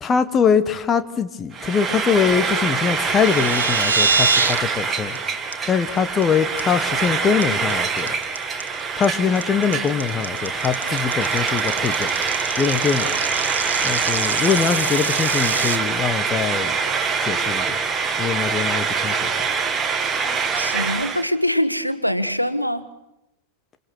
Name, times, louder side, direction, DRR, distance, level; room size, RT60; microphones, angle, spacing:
voice 1, 0.0-5.2 5.7-8.2 9.0-12.1 12.6-13.1 13.8-16.8 17.2-17.8 18.2-19.3, left 6 dB, 20° left, 1.6 m, -22 dB
Frying (food), 1.5-21.3, right 5 dB, 20° right, 2.5 m, -24 dB
sound 1, 2.9-4.6 4.9-5.2 5.5-5.6 6.0-6.2 6.6-7.1 7.4-15.8, right 4 dB, 70° right, 1.6 m, -25 dB
voice 2, 20.5-22.9, equal, 90° right, 1.3 m, -23 dB
28.0 x 27.5 x 6.4 m
figure-of-eight pair, 90°, 0 cm